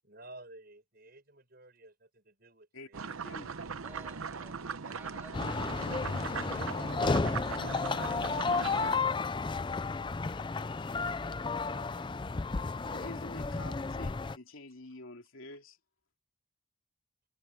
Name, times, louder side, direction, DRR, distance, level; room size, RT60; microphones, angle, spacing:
voice 1, 0.0-3.9 11.7-12.1, right 2 dB, 45° right, 6.9 m, -55 dB
voice 2, 2.7-3.5 12.9-15.8, left 2 dB, 80° left, 2.8 m, -47 dB
sound 1, 2.9-9.0, right 5 dB, 90° right, 0.8 m, -39 dB
voice 3, 3.8-10.6, right 1 dB, 10° right, 7.7 m, -58 dB
sound 2, 5.3-14.4, left 4 dB, 25° left, 0.4 m, -32 dB
head